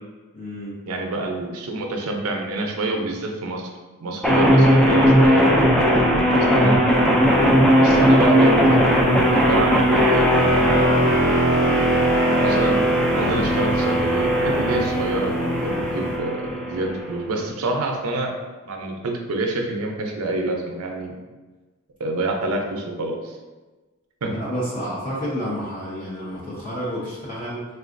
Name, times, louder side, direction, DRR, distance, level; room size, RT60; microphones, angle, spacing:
voice 1, 0.3-0.8 7.3-7.6 24.3-27.7, equal, 35° left, -9 dB, 0.7 m, -30 dB
voice 2, 0.9-3.7 4.0-6.8 7.7-8.8 9.3-11.2 12.4-12.8 13.1-18.3 18.6-21.2 22.0-23.4 24.2-24.4, right 2 dB, 85° right, 2 dB, 0.5 m, -27 dB
sound 1, 4.2-17.2, equal, 5° left, 0.3 m, -18 dB
sound 2, 6.9-16.2, left 1 dB, 75° left, 0.7 m, -32 dB
3.7 x 2.3 x 2.5 m, 1.2 s
head